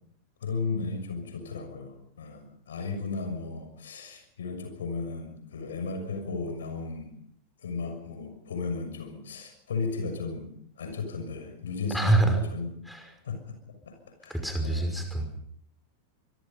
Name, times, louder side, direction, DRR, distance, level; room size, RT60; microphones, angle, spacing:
voice 1, 0.4-7.2 7.6-10.5 10.8-12.7 13.2-13.4 13.8-14.4 14.6-14.9, left 4 dB, 65° left, 6 dB, 6.5 m, -35 dB
voice 2, 11.9-12.4 12.9-13.0 14.3-15.4, right 2 dB, ahead, 5 dB, 5.6 m, -25 dB
25.0 x 25.0 x 5.5 m, 0.66 s
figure-of-eight pair, 90°, 0 cm